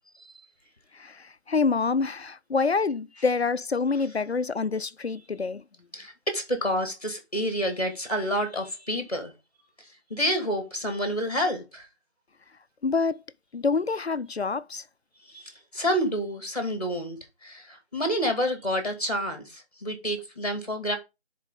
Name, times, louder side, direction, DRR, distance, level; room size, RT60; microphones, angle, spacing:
voice 1, 0.9-5.6 12.8-13.2 13.5-14.8, left 4 dB, 65° left, 0.5 m, -26 dB
voice 2, 5.9-9.3 9.8-11.9 15.3-21.0, equal, 35° left, 2.1 m, -29 dB
10.0 x 4.1 x 3.8 m
figure-of-eight pair, 180°, 34 cm